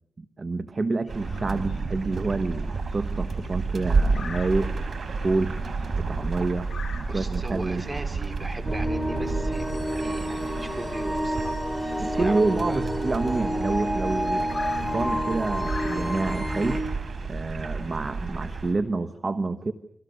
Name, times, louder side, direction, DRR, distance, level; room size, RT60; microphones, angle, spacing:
voice 1, 0.2-4.7 5.2-5.6 6.0-6.7 7.0-7.8 12.0-14.4 14.8-16.9 17.3-19.7, right 3 dB, 45° right, 10 dB, 1.2 m, -28 dB
sound 1, 1.1-16.3, left 5 dB, 65° left, 4.2 m, -47 dB
sound 2, 1.1-18.7, right 4 dB, 75° right, 4.3 m, -31 dB
voice 2, 7.1-9.7 10.0-11.6 12.0-12.8 13.3-13.4, right 2 dB, 30° right, 7 dB, 4.3 m, -38 dB
sound 3, 8.6-16.8, equal, 5° right, 5.6 m, -29 dB
29.5 x 24.5 x 6.7 m, 0.71 s
wide cardioid pair, 80°, 0 cm